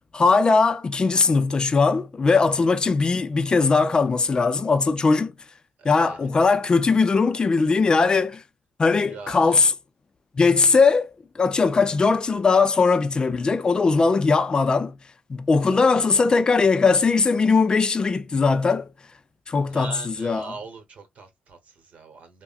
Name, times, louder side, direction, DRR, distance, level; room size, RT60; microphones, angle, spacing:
voice 1, 0.1-5.3 5.8-8.4 8.8-9.7 10.3-11.1 11.4-15.0 15.3-18.9 19.5-20.5, left 4 dB, 30° left, 0.5 m, -20 dB
voice 2, 5.8-6.2 9.1-9.6 15.6-15.9 19.7-22.4, right 4 dB, 50° right, 1.2 m, -41 dB
3.5 x 2.2 x 2.5 m
cardioid pair, 95°, 3 cm